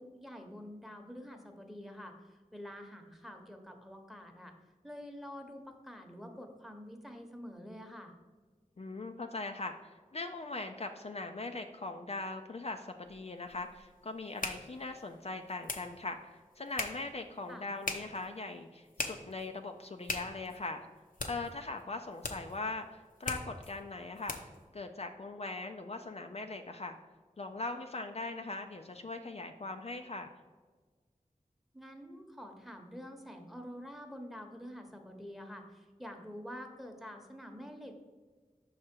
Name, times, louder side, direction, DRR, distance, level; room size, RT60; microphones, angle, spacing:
voice 1, 0.0-4.5 4.8-8.1 17.5-17.7 31.7-38.0, equal, ahead, 4 dB, 1.0 m, -47 dB
voice 2, 8.8-20.9 21.2-24.4 24.7-27.0 27.4-30.3, left 3 dB, 50° left, 5 dB, 0.4 m, -40 dB
sound 1, 13.0-24.6, left 3 dB, 80° left, 0.7 m, -43 dB
5.8 x 4.9 x 4.4 m, 1.4 s
wide cardioid pair, 45°, 14 cm